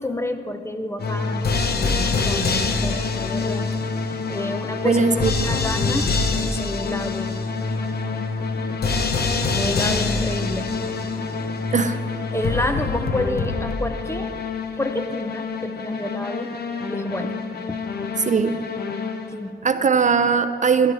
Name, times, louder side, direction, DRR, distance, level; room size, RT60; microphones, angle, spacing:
voice 1, 0.0-3.7 4.3-7.3 9.5-10.8 12.3-14.3 14.8-16.5 16.9-17.4 17.7-17.8 19.3-19.6, left 1 dB, 10° left, 8 dB, 0.6 m, -29 dB
sound 1, 1.0-19.5, left 4 dB, 50° left, 0.9 m, -25 dB
voice 2, 4.8-5.6 11.7-12.0 18.3-18.6 19.6-20.9, right 5 dB, 35° right, 10 dB, 0.5 m, -20 dB
22.5 x 11.0 x 3.4 m, 2.4 s
wide cardioid pair, 135°, 21 cm